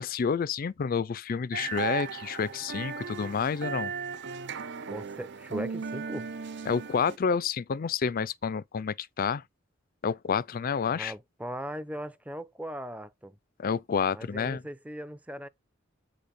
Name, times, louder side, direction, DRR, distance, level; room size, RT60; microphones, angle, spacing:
voice 1, 0.0-3.9 6.7-9.4 10.0-11.1 13.6-14.6, left 6 dB, 45° left, 0.4 m, -29 dB
sound 1, 1.5-7.2, right 6 dB, 65° right, 0.7 m, -36 dB
voice 2, 4.9-6.3 10.9-13.4 14.1-15.5, equal, 10° right, 0.6 m, -39 dB
7.8 x 5.1 x 4.2 m
head